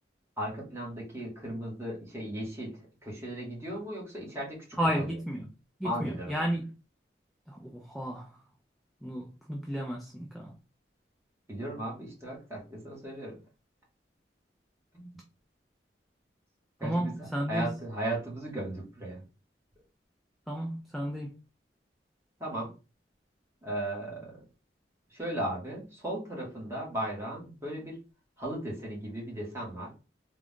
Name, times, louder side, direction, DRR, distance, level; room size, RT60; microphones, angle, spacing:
voice 1, 0.4-5.2 5.8-6.5 11.5-13.4 14.9-15.2 16.8-19.2 22.4-22.7 23.6-24.4 25.1-28.0 28.4-29.9, right 1 dB, 15° right, 1.6 m, -36 dB
voice 2, 4.8-5.5 5.8-6.7 7.5-8.3 9.0-10.5 16.8-17.7 20.5-21.3, equal, ahead, 0.5 m, -32 dB
3.6 x 2.4 x 3.6 m
head